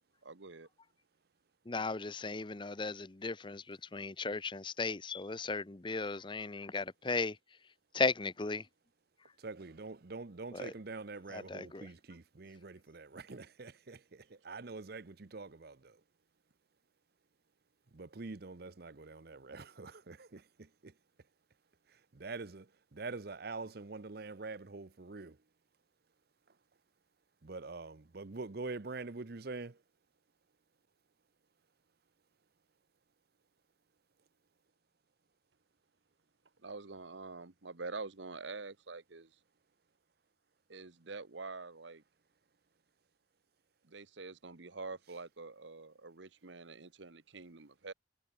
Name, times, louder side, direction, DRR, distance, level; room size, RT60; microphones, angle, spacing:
voice 1, 0.2-0.7 36.6-39.3 40.7-42.0 43.8-47.9, right 3 dB, 70° right, 1.2 m, -46 dB
voice 2, 1.7-7.4 7.9-8.7 10.5-10.7 11.3-11.9, left 3 dB, 25° left, 0.7 m, -36 dB
voice 3, 9.4-16.0 17.9-20.9 21.9-25.4 27.4-29.8, right 3 dB, 55° right, 0.8 m, -45 dB
head